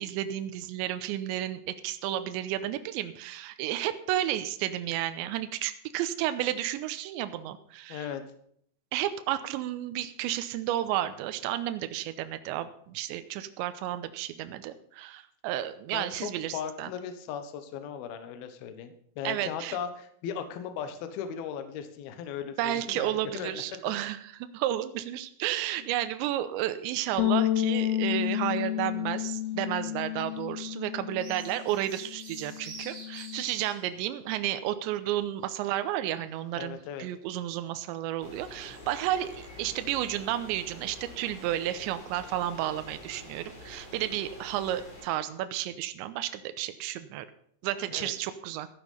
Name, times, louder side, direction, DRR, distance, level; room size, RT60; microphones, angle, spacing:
voice 1, 0.0-8.1 8.9-16.9 19.2-19.8 22.6-47.3 47.6-48.7, right 13 dB, 80° right, 11 dB, 2.7 m, -32 dB
voice 2, 7.9-8.2 15.9-24.0 25.8-25.9 36.6-37.1 47.7-48.1, left 8 dB, 70° left, 9 dB, 2.4 m, -38 dB
Bass guitar, 27.2-33.4, left 13 dB, 85° left, 2.5 m, -31 dB
sound 1, 28.0-30.5 30.8-34.1 34.4-37.2 37.7-37.9 38.2-38.9 39.2-39.7 40.0-40.4 40.7-40.9 41.4-41.5, right 3 dB, 30° right, 3.1 m, -50 dB
sound 2, 38.2-45.0, left 1 dB, 40° left, 5.2 m, -47 dB
14.0 x 9.7 x 5.5 m, 0.65 s
omnidirectional pair, 5.9 m